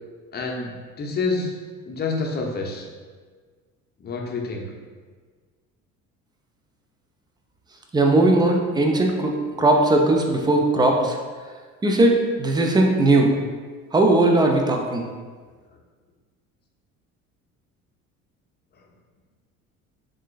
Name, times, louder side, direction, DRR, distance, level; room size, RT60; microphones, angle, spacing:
voice 1, 0.3-1.5 1.9-2.8 4.0-4.6, left 3 dB, 25° left, 0 dB, 0.7 m, -28 dB
voice 2, 7.9-11.2 11.8-13.3 13.9-15.0, right 2 dB, 10° right, 2 dB, 0.4 m, -18 dB
7.2 x 2.6 x 2.4 m, 1.5 s
figure-of-eight pair, 60°, 42 cm